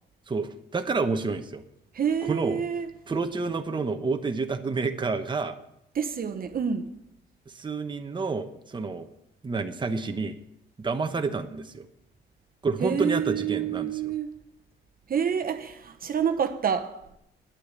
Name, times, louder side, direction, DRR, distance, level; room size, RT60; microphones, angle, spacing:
voice 1, 0.3-1.6 2.2-2.6 3.1-5.6 7.5-9.1 9.4-10.4 10.8-11.9 12.6-14.0, right 4 dB, 25° right, 1.0 m, -29 dB
voice 2, 1.9-2.9 5.9-6.9 12.8-14.4 15.1-17.0, right 7 dB, 45° right, 1.0 m, -28 dB
10.0 x 8.5 x 8.0 m
cardioid pair, 90°, 20 cm